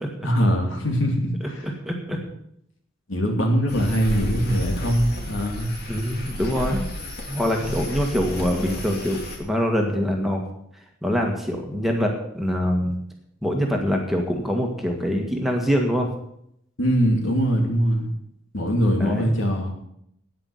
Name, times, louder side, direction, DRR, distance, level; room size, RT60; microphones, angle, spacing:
voice 1, 0.2-1.7 3.1-5.7 16.8-18.1 18.5-19.7, equal, 70° left, 2 dB, 2.8 m, -22 dB
voice 2, 1.6-2.2 5.9-6.8 7.3-10.4 11.0-13.0 13.4-16.1 19.0-19.4, equal, ahead, 1 dB, 1.7 m, -24 dB
sound 1, 3.7-9.4, left 1 dB, 50° left, 2.6 m, -32 dB
9.9 x 9.2 x 8.0 m, 0.73 s
head